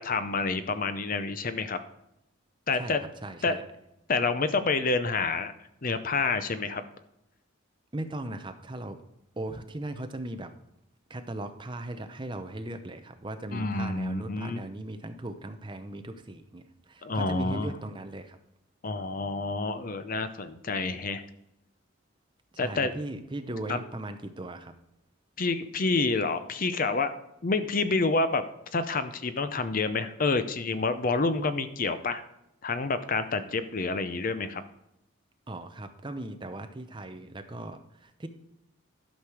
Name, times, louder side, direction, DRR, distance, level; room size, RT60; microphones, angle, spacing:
voice 1, 0.0-1.8 2.7-3.0 3.4-3.6 4.1-5.5 5.8-6.8 13.5-14.6 17.0-17.7 18.8-21.2 22.6-22.9 23.7-23.8 25.4-27.1 27.4-28.4 28.7-32.2 32.6-34.6, left 3 dB, 40° left, 11 dB, 0.6 m, -28 dB
voice 2, 3.2-3.6 7.9-9.0 9.4-10.5 11.1-18.4 22.5-24.7 35.5-38.3, right 1 dB, 20° right, 8 dB, 0.7 m, -38 dB
12.0 x 6.3 x 4.8 m, 0.82 s
head